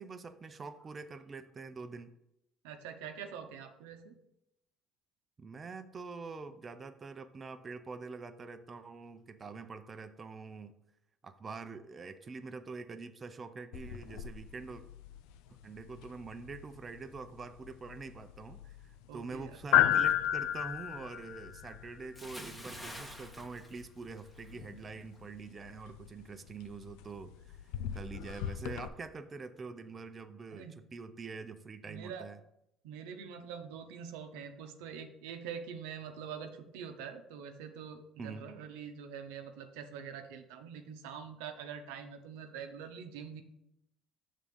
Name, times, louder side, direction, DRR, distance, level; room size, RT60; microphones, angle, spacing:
voice 1, 0.0-2.1 5.4-10.7 11.2-14.8 15.6-32.4 38.2-38.5, right 4 dB, 30° right, 9 dB, 0.5 m, -45 dB
voice 2, 2.6-4.2 19.1-19.5 30.5-30.7 31.9-32.2 32.8-43.4, right 7 dB, 90° right, 7 dB, 0.7 m, -45 dB
sound 1, 13.7-28.9, left 11 dB, 85° left, 0.3 m, -36 dB
Bathtub (filling or washing) / Splash splatter, 22.1-24.6 24.9-25.2, equal, 5° left, 1.0 m, -47 dB
6.6 x 3.7 x 5.3 m, 0.82 s
supercardioid pair, 90°, 0 cm